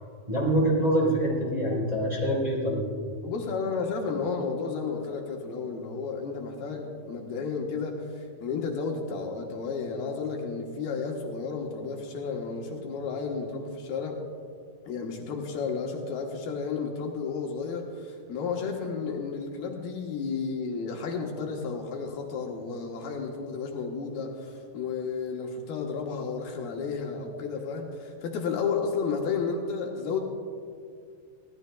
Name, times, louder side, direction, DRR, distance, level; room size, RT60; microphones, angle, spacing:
voice 1, 0.3-2.9, right 1 dB, 10° right, -6 dB, 3.9 m, -25 dB
voice 2, 3.2-14.2 14.9-30.2, left 5 dB, 75° left, 0 dB, 3.0 m, -32 dB
25.0 x 17.0 x 2.3 m, 2.2 s
omnidirectional pair, 4.5 m